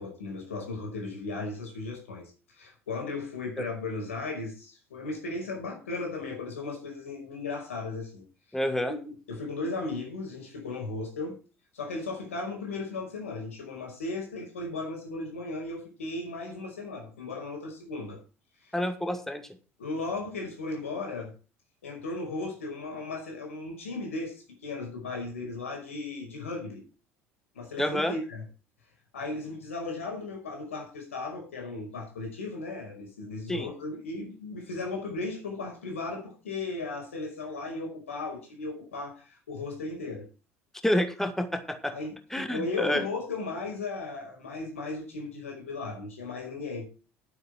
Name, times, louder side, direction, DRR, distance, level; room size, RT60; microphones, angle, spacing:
voice 1, 0.0-8.2 9.3-11.4 11.7-18.2 18.6-18.8 19.8-21.3 21.8-26.8 27.5-28.4 29.1-40.3 41.9-46.9, left 3 dB, 75° left, 2 dB, 5.4 m, -36 dB
voice 2, 8.5-8.9 18.7-19.5 27.8-28.1 33.5-33.7 40.8-41.9 42.3-43.0, left 1 dB, 5° left, 8 dB, 2.3 m, -28 dB
12.0 x 9.4 x 4.5 m, 0.35 s
figure-of-eight pair, 65°, 7 cm